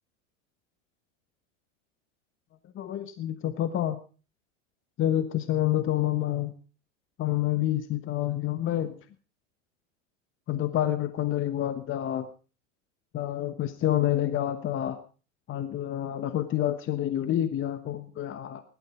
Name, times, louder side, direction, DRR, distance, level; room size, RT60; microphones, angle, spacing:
voice 1, 2.7-4.0 5.0-6.5 7.2-8.9 10.5-12.3 13.1-15.0 15.5-18.6, left 12 dB, 35° left, 11 dB, 1.2 m, -28 dB
17.0 x 12.0 x 4.8 m, 0.36 s
hypercardioid pair, 100°, 37 cm